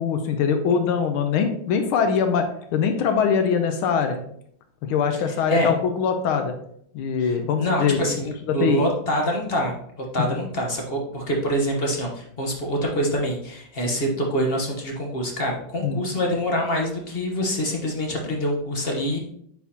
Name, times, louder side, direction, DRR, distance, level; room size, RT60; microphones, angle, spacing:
voice 1, 0.0-4.2 4.9-6.5 6.9-8.8 10.3-10.4 15.8-16.0, left 6 dB, 85° left, 6 dB, 1.5 m, -23 dB
voice 2, 7.2-19.2, equal, 35° left, 0 dB, 1.0 m, -25 dB
9.2 x 4.2 x 2.8 m, 0.67 s
omnidirectional pair, 2.2 m